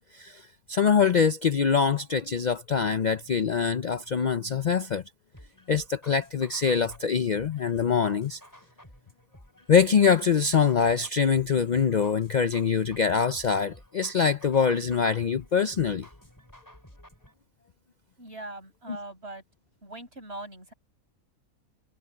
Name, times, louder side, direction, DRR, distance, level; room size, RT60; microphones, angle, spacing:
voice 1, 0.1-5.0 5.7-8.4 9.7-16.1, left 6 dB, 70° left, 0.4 m, -24 dB
sound 1, 5.3-17.3, equal, 10° left, 6.7 m, -53 dB
voice 2, 18.2-19.4 19.8-20.7, right 2 dB, 45° right, 6.4 m, -41 dB
omnidirectional pair, 1.6 m